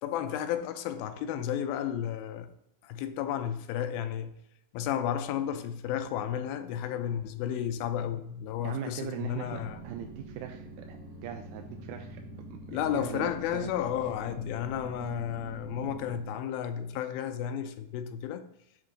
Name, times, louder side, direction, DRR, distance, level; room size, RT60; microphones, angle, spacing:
voice 1, 0.0-2.5 2.8-4.4 4.7-9.8 12.7-18.4, left 9 dB, 85° left, 2.5 m, -32 dB
voice 2, 8.6-12.2 12.5-13.7, right 9 dB, 90° right, 2.5 m, -40 dB
sound 1, 9.4-16.2, right 2 dB, 55° right, 1.3 m, -45 dB
7.9 x 3.8 x 6.6 m
omnidirectional pair, 4.2 m